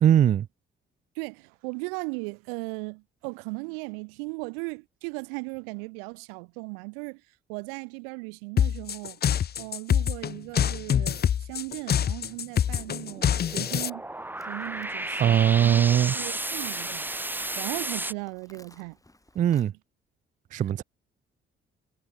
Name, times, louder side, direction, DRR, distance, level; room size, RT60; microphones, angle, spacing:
voice 1, 0.0-0.5 15.2-16.2 19.4-19.7 20.5-20.8, right 10 dB, 25° right, 0.3 m, -20 dB
voice 2, 1.1-7.2 7.5-9.2 9.6-14.0 14.4-17.1 17.6-19.0, right 38 dB, 65° right, 0.7 m, -37 dB
sound 1, 8.6-13.9, left 9 dB, 30° left, 0.6 m, -25 dB
sound 2, 10.5-10.6 10.8-11.0 12.1-12.2 12.4-18.1, right 1 dB, 5° right, 0.8 m, -33 dB
Livestock farm animals working animals, 14.4-19.7, left 1 dB, 10° left, 3.8 m, -57 dB
figure-of-eight pair, 40°, 31 cm